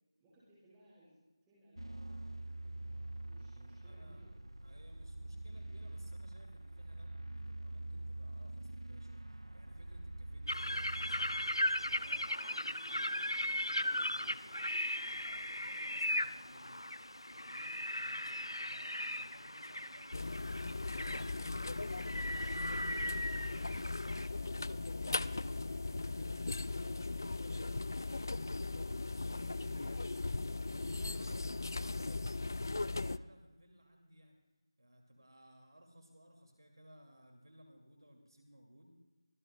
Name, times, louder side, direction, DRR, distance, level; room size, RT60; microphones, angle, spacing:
voice 1, 0.2-1.2 1.5-2.6 3.2-4.3 29.2-29.6 30.6-31.1, right 1 dB, 5° right, -9 dB, 5.0 m, -63 dB
sound 1, 1.8-12.3, right 2 dB, 80° right, 0.6 m, -45 dB
voice 2, 3.8-4.2 4.6-16.8 17.2-20.6 21.0-34.3 34.8-38.9, equal, 60° right, 2 dB, 2.4 m, -60 dB
sound 2, 10.5-24.3, left 1 dB, 80° left, 0.6 m, -38 dB
sound 3, 20.1-33.2, left 3 dB, 45° left, 0.4 m, -38 dB
24.5 x 15.5 x 2.3 m, 1.2 s
figure-of-eight pair, 165°, 3 cm